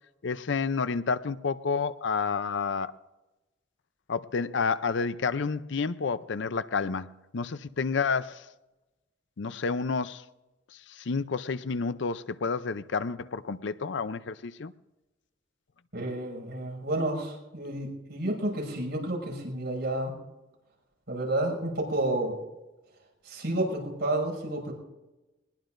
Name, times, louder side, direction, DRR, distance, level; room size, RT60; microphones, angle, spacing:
voice 1, 0.2-2.9 4.1-8.5 9.4-10.2 10.9-14.7, left 5 dB, 70° left, 0.6 m, -30 dB
voice 2, 15.9-20.2 21.1-22.4 23.2-24.7, right 1 dB, 65° right, 6.3 m, -30 dB
21.5 x 20.5 x 2.6 m
head